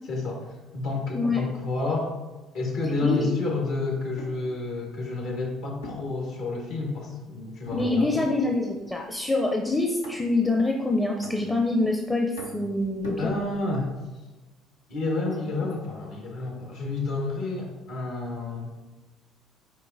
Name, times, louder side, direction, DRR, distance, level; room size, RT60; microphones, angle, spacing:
voice 1, 0.1-2.1 2.5-8.1 13.2-13.9 14.9-18.7, left 3 dB, 65° left, -1 dB, 1.7 m, -30 dB
sound 1, 4.2-4.5 5.8-6.9 7.6-8.5 8.8-9.2 10.0-10.5 11.2-11.9 12.4-13.8, left 1 dB, 85° left, 0.8 m, -42 dB
voice 2, 7.7-13.3 15.5-15.6, left 2 dB, 15° left, 1 dB, 0.6 m, -25 dB
7.5 x 4.7 x 2.7 m, 1.1 s
hypercardioid pair, 55°, 0 cm